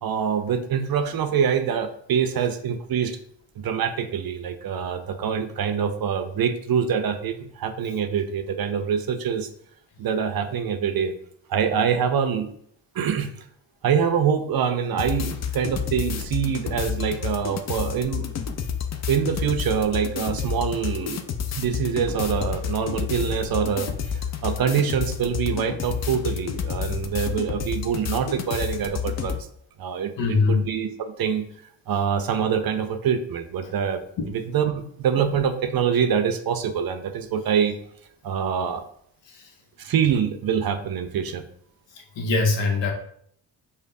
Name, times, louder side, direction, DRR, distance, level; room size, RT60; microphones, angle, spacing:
voice 1, 0.0-3.2 3.6-9.5 10.0-11.1 11.5-12.5 12.9-13.3 13.8-18.3 19.1-21.2 21.6-29.4 29.8-31.5 31.9-34.0 34.3-37.7 38.2-38.8 39.8-41.4, right 7 dB, 50° right, 8 dB, 0.5 m, -25 dB
sound 1, 15.0-29.4, left 8 dB, 35° left, 0.4 m, -30 dB
voice 2, 30.2-30.7 33.6-33.7 39.3-39.5 41.9-42.9, left 4 dB, 65° left, 3 dB, 0.9 m, -23 dB
5.1 x 2.2 x 2.5 m, 0.66 s
supercardioid pair, 50°, 47 cm